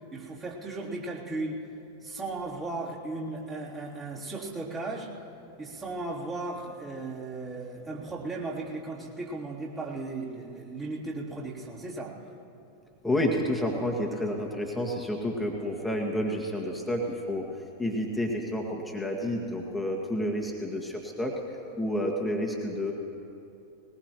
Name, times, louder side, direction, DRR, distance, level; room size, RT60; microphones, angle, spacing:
voice 1, 0.1-1.6 2.0-5.1 5.6-12.2, right 2 dB, 20° right, -6 dB, 3.3 m, -36 dB
voice 2, 13.0-17.4 17.8-21.4 21.8-22.9, left 1 dB, 5° left, -1 dB, 1.9 m, -30 dB
20.5 x 20.5 x 3.0 m, 2.7 s
figure-of-eight pair, 90°, 0 cm